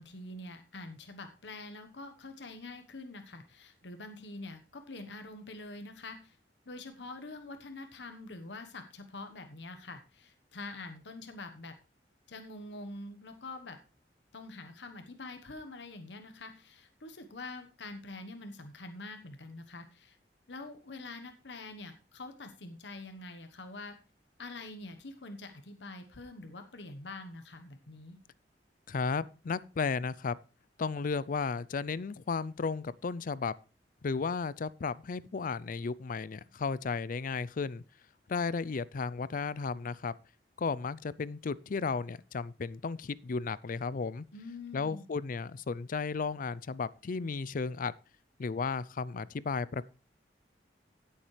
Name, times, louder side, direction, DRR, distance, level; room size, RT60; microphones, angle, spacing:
voice 1, 0.0-6.4 6.7-11.8 12.3-13.8 14.3-20.2 20.5-24.0 24.4-28.2 44.3-45.1, left 2 dB, 80° left, 1.2 m, -45 dB
voice 2, 28.9-30.3 30.8-33.5 34.0-37.8 38.3-40.1 40.6-44.3 44.7-47.9 48.4-49.9, left 4 dB, 50° left, 0.4 m, -34 dB
16.0 x 7.2 x 3.2 m
head